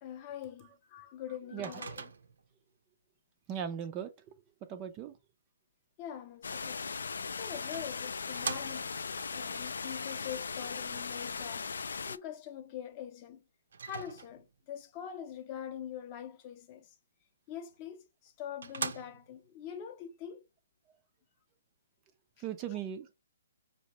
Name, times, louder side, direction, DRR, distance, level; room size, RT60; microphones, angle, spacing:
voice 1, 0.0-2.0 6.0-6.8 7.4-11.7 12.1-13.4 13.8-16.9 17.5-20.4, left 9 dB, 25° left, 0.6 m, -44 dB
voice 2, 1.5-1.8 3.5-5.2 22.4-23.1, right 9 dB, 20° right, 0.4 m, -39 dB
Microwave oven, 1.6-2.5 6.9-7.0 7.7-9.1 13.7-14.6 17.7-17.8 18.3-18.4 18.6-19.5, right 5 dB, 75° right, 0.7 m, -41 dB
sound 1, 6.4-12.2, left 5 dB, 85° left, 0.3 m, -38 dB
5.0 x 2.8 x 2.9 m
hypercardioid pair, 160°, 0 cm